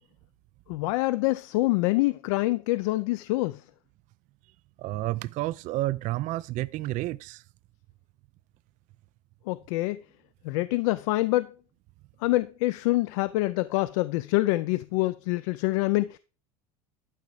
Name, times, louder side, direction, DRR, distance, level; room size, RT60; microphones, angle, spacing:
voice 1, 0.7-3.6 9.5-10.0 10.4-11.5 12.2-16.2, left 19 dB, 70° left, 0.5 m, -26 dB
voice 2, 4.8-7.4, right 17 dB, 45° right, 0.4 m, -30 dB
12.0 x 4.6 x 4.9 m
hypercardioid pair, 90°, 18 cm